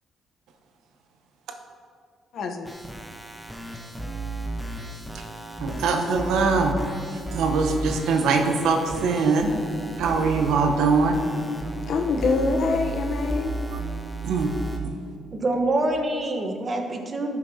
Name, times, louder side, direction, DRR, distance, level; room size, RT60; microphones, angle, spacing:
voice 1, 2.3-2.7 11.9-13.5, left 4 dB, 70° left, 4 dB, 0.8 m, -25 dB
sound 1, 2.6-14.8, right 2 dB, ahead, 0.9 m, -34 dB
voice 2, 5.6-6.7 7.3-9.5 10.0-11.2 13.7-13.8 14.2-14.5 14.8-14.9, right 4 dB, 85° right, 4 dB, 0.9 m, -22 dB
voice 3, 15.3-17.4, right 2 dB, 35° right, 3 dB, 1.1 m, -25 dB
12.0 x 6.9 x 2.8 m, 2.1 s
cardioid pair, 90°, 0 cm